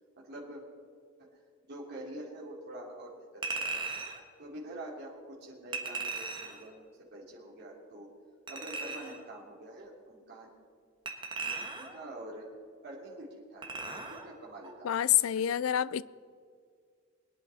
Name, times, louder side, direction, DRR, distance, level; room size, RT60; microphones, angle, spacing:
voice 1, 0.2-0.6 1.2-1.3 1.6-3.8 4.4-8.1 8.5-10.5 11.4-12.5 12.8-14.9 15.2-15.4, right 1 dB, 55° right, -4 dB, 3.3 m, -46 dB
Chink clink, 3.4-4.2 5.7-6.7 8.5-9.2 11.1-12.0 13.6-14.3 14.6-14.8, right 3 dB, 25° right, 1.4 m, -37 dB
voice 2, 14.8-16.0, left 11 dB, 85° left, 20 dB, 0.4 m, -27 dB
22.5 x 10.0 x 4.2 m, 2.1 s
head